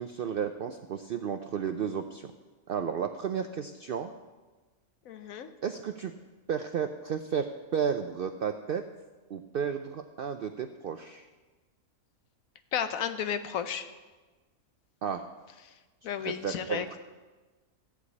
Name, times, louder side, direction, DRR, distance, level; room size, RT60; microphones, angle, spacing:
voice 1, 0.0-2.3 2.7-4.1 5.6-6.1 6.5-8.9 9.3-11.3 15.0-15.2 16.2-17.0, right 7 dB, 70° right, 7 dB, 0.5 m, -33 dB
voice 2, 5.1-5.5 12.7-13.9 16.0-16.9, left 8 dB, 75° left, 10 dB, 1.1 m, -33 dB
14.0 x 4.8 x 8.3 m, 1.3 s
omnidirectional pair, 1.5 m